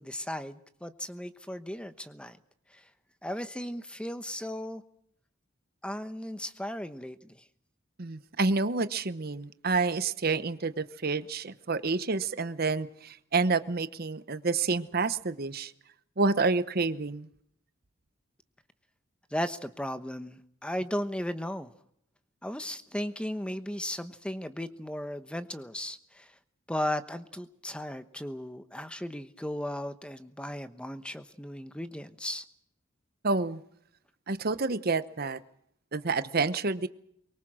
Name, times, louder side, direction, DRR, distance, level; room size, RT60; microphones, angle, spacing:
voice 1, 0.0-2.4 2.7-2.8 3.2-4.8 5.8-7.4 19.3-21.7 22.4-26.3 26.7-32.4, left 1 dB, 5° left, 10 dB, 1.0 m, -36 dB
voice 2, 8.0-15.7 16.2-17.3 33.2-33.6 34.3-35.4 35.9-36.9, right 3 dB, 50° right, 13 dB, 0.9 m, -28 dB
24.0 x 23.0 x 6.2 m, 0.69 s
head